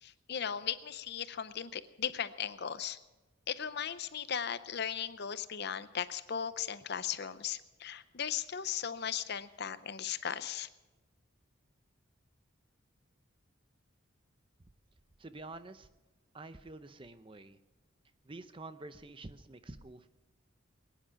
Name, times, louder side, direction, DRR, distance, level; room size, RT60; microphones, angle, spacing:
voice 1, 0.0-3.0 3.5-10.7, left 8 dB, 50° left, 13 dB, 0.6 m, -37 dB
voice 2, 15.2-15.9 16.3-17.6 18.2-20.1, right 2 dB, 25° right, 11 dB, 0.6 m, -48 dB
21.0 x 10.0 x 5.8 m, 1.1 s
head